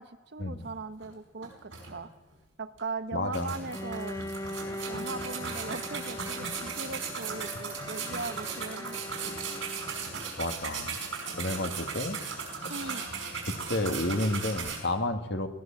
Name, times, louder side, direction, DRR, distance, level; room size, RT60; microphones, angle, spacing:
voice 1, 0.0-2.1 2.6-4.2 4.9-9.4 12.7-13.0, right 3 dB, 60° right, 11 dB, 1.1 m, -39 dB
sound 1, 1.0-1.1 1.4-2.3 2.8-2.9 3.3-14.8, right 5 dB, 80° right, 5.5 m, -37 dB
voice 2, 3.1-3.6 10.4-11.0 11.3-12.2 12.6-13.0 13.5-15.5, left 1 dB, 60° left, 7 dB, 1.9 m, -31 dB
Bowed string instrument, 3.7-10.4, left 1 dB, 15° left, 0.6 m, -41 dB
19.0 x 18.5 x 7.4 m, 1.1 s
head